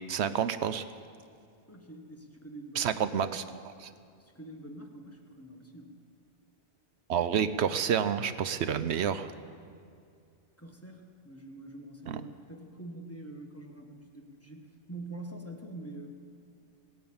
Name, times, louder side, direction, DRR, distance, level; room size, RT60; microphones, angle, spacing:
voice 1, 0.1-0.8 2.8-3.9 7.1-9.3 12.1-12.2, right 8 dB, 80° right, 12 dB, 0.9 m, -29 dB
voice 2, 1.7-3.6 4.2-6.0 10.6-16.1, right 2 dB, 15° left, 2 dB, 1.4 m, -45 dB
17.5 x 9.4 x 8.7 m, 2.4 s
omnidirectional pair, 1.1 m